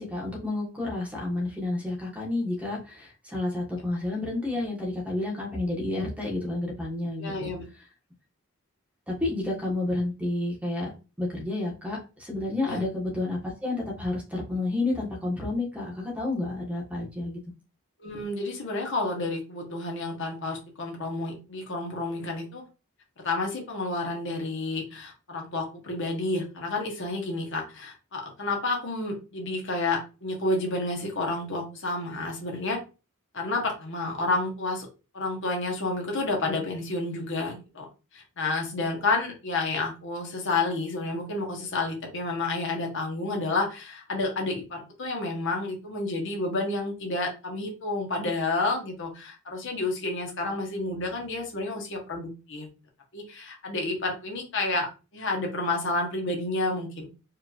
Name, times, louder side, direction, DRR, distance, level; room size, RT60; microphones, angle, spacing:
voice 1, 0.0-7.5 9.1-10.9 11.2-17.4, left 2 dB, 5° right, -2 dB, 1.3 m, -30 dB
voice 2, 7.2-7.6 12.7-12.8 18.0-22.6 23.2-32.8 33.3-34.9 35.1-37.9 38.1-52.7 53.1-57.1, left 2 dB, 60° left, 1 dB, 1.1 m, -30 dB
4.6 x 3.2 x 2.4 m, 0.31 s
head